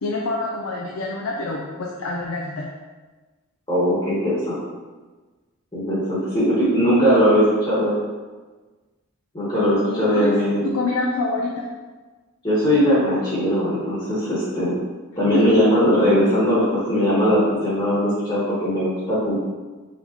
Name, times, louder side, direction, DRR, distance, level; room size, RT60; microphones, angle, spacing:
voice 1, 0.0-2.7 9.9-10.4 10.6-11.7 15.3-15.5, left 2 dB, 85° left, -2 dB, 0.5 m, -26 dB
voice 2, 3.7-4.6 5.7-7.9 9.3-10.7 12.4-14.8 15.2-19.4, equal, 25° left, -9 dB, 1.3 m, -19 dB
4.8 x 3.6 x 2.8 m, 1.3 s
head